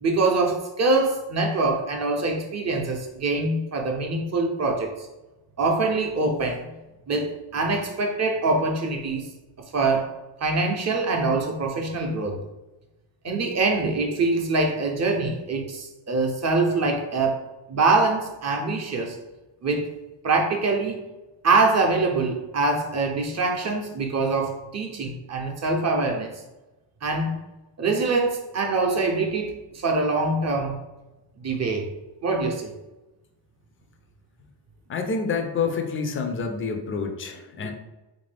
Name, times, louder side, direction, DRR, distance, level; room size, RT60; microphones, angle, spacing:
voice 1, 0.0-4.9 5.6-6.7 7.1-9.3 9.7-10.1 10.4-12.4 13.2-17.4 17.7-19.2 19.6-19.9 20.2-21.0 21.4-26.3 27.0-27.4 27.8-30.8 31.4-31.9 32.2-32.7, right 3 dB, 35° right, 2 dB, 0.6 m, -24 dB
voice 2, 34.9-37.7, left 5 dB, 30° left, 5 dB, 0.4 m, -28 dB
3.5 x 2.6 x 3.3 m, 1.1 s
cardioid pair, 135°, 47 cm